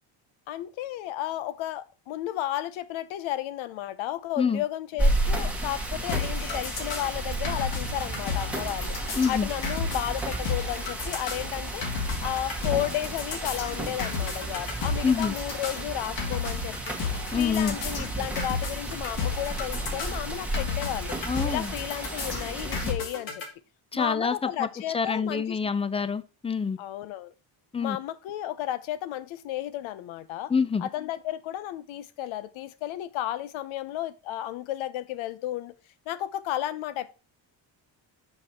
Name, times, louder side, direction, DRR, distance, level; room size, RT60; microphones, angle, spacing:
voice 1, 0.5-8.9 9.3-11.8 12.2-17.0 17.3-21.1 21.4-23.4 23.9-25.6 26.8-27.3 27.8-30.5 30.8-35.7 36.1-37.2, left 13 dB, 90° left, 0.8 m, -33 dB
sound 1, 5.0-22.9, right 1 dB, 5° right, 1.5 m, -32 dB
sound 2, 6.1-23.4, left 5 dB, 70° left, 2.7 m, -33 dB
voice 2, 9.2-9.5 15.0-15.3 17.3-17.8 21.3-21.7 23.9-24.7 24.9-26.8 27.7-28.0 30.5-30.9, left 5 dB, 15° left, 0.4 m, -26 dB
6.4 x 5.2 x 4.3 m
cardioid pair, 120°, 46 cm